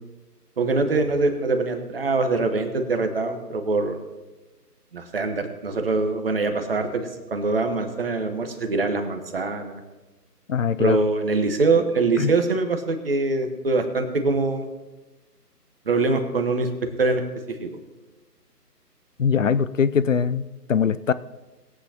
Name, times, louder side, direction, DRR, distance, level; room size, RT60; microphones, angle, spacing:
voice 1, 0.6-4.0 4.9-9.8 10.8-14.7 15.9-16.7 17.0-17.2 17.6-17.8, right 3 dB, 35° right, 7 dB, 1.3 m, -23 dB
voice 2, 10.5-11.0 12.2-12.3 19.2-21.1, left 6 dB, 55° left, 15 dB, 0.5 m, -22 dB
21.0 x 8.4 x 2.9 m, 1.2 s
figure-of-eight pair, 160°, 48 cm